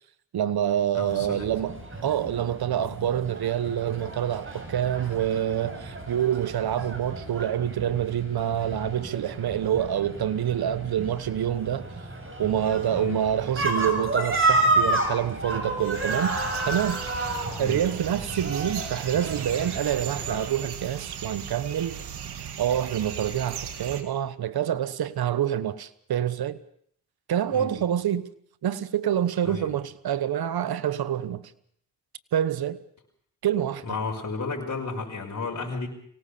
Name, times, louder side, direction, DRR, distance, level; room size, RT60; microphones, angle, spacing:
voice 1, 0.3-11.9 12.4-16.4 16.6-17.0 17.6-22.0 22.6-26.6 27.3-28.3 28.6-31.4 32.3-32.8 33.4-33.8, right 10 dB, 70° right, 1.3 m, -27 dB
voice 2, 0.9-1.5 9.3-9.4 13.0-13.2 17.6-17.8 27.5-27.8 29.4-29.7 33.8-35.9, left 4 dB, 45° left, 5.8 m, -32 dB
sound 1, 1.1-20.4, right 2 dB, 30° right, 7.2 m, -31 dB
sound 2, 15.8-24.0, right 8 dB, 85° right, 2.2 m, -37 dB
24.0 x 18.0 x 6.9 m
cardioid pair, 60°, 39 cm